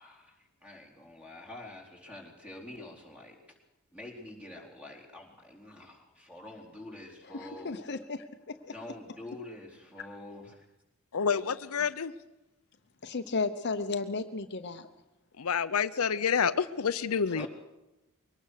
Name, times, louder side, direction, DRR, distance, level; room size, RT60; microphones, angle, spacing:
voice 1, 0.0-3.6 3.9-7.8 8.7-10.7 17.3-17.5, left 1 dB, 5° right, 4.2 m, -47 dB
voice 2, 7.3-8.7 13.0-14.9 17.4-17.5, left 3 dB, 50° left, 0.9 m, -34 dB
voice 3, 11.1-12.1 15.4-17.5, left 6 dB, 75° left, 0.6 m, -28 dB
22.5 x 18.5 x 6.6 m
head